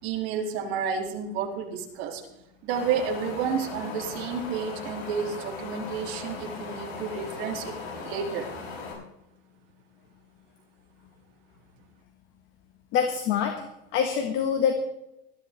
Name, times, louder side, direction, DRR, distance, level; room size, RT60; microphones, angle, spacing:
voice 1, 0.0-2.2 2.6-8.5, right 6 dB, 45° right, 1 dB, 3.0 m, -31 dB
Wind, 2.7-8.9, left 4 dB, 70° left, 7.3 m, -38 dB
voice 2, 12.9-13.5 13.9-14.7, left 7 dB, 40° left, 5 dB, 1.6 m, -24 dB
20.5 x 13.0 x 3.5 m, 0.86 s
supercardioid pair, 175°, 30 cm